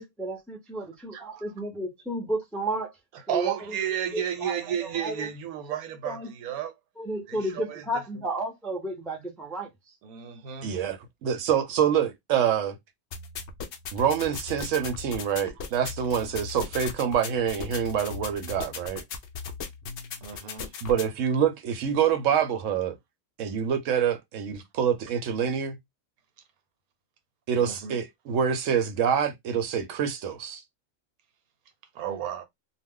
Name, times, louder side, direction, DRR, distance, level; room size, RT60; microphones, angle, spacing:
voice 1, 0.0-2.9 3.3-3.5 4.1-4.6 5.0-5.3 6.0-6.3 7.0-9.7, right 1 dB, ahead, 0.4 m, -32 dB
voice 2, 1.1-1.4 3.1-6.7 7.3-8.3 10.0-10.8 20.2-20.7 27.6-28.0 31.9-32.4, right 9 dB, 85° right, 1.2 m, -33 dB
voice 3, 10.6-12.8 13.9-19.0 20.8-23.0 23.4-25.8 27.5-30.6, right 8 dB, 70° right, 0.9 m, -26 dB
sound 1, 13.1-21.1, left 5 dB, 70° left, 0.5 m, -38 dB
2.4 x 2.1 x 3.6 m
omnidirectional pair, 1.5 m